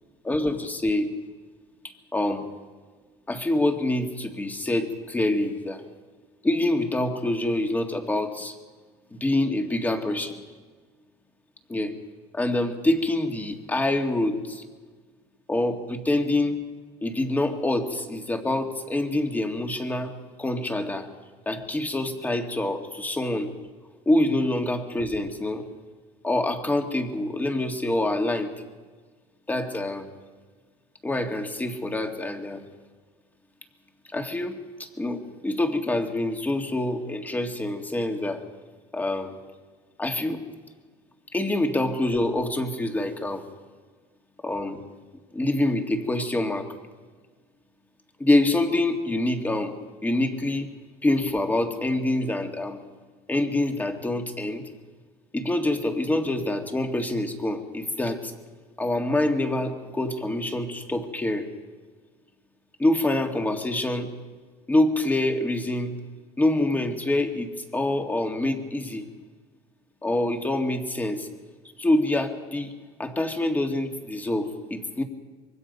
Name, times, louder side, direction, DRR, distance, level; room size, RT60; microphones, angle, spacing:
voice 1, 0.2-1.1 2.1-2.5 3.3-5.8 6.4-8.6 9.1-10.4 11.7-11.9 12.3-14.6 15.5-16.6 17.0-20.1 20.4-21.1 21.5-23.5 24.1-25.6 26.2-28.5 29.5-30.1 31.0-32.6 34.1-38.4 38.9-39.3 40.0-40.4 41.3-43.5 44.4-44.8 45.3-46.7 48.2-49.8 50.0-50.7 51.0-52.8 53.3-54.6 55.3-58.3 58.8-61.5 62.8-64.1 64.7-66.0 66.4-69.1 70.0-71.3 71.8-72.7 73.0-75.0, left 1 dB, 10° left, 5 dB, 1.9 m, -26 dB
25.5 x 23.0 x 5.4 m, 1.4 s
cardioid pair, 135°, 16 cm